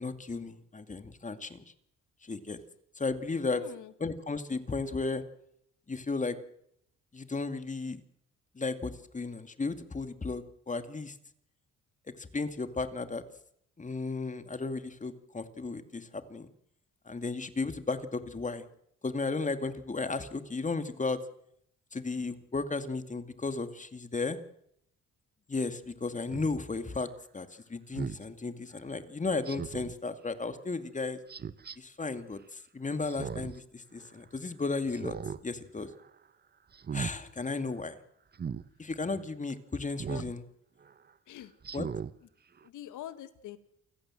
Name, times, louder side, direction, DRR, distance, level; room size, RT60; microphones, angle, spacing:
voice 1, 0.0-1.6 2.2-2.6 3.0-3.6 4.0-5.2 5.9-6.4 7.1-8.0 8.5-11.2 12.2-13.2 13.8-16.5 17.1-18.6 19.0-21.2 21.9-24.4 25.5-27.1 27.3-31.2 31.8-35.2 35.4-35.9 36.9-38.0 38.8-40.4 41.7-41.9, left 3 dB, 25° left, 10 dB, 2.3 m, -34 dB
voice 2, 3.5-3.9 40.1-40.2 41.3-41.5 42.6-43.6, left 12 dB, 85° left, 12 dB, 1.9 m, -44 dB
Speech synthesizer, 26.3-26.5 27.9-28.2 29.4-29.9 31.3-31.8 33.1-33.6 34.0-34.1 34.9-35.4 35.8-36.1 36.7-37.1 38.3-38.6 40.0-40.3 40.8-40.9 41.6-42.1 42.6-42.7, right 7 dB, 35° right, 0.9 m, -37 dB
28.0 x 16.0 x 7.7 m, 0.74 s
cardioid pair, 90°, 30 cm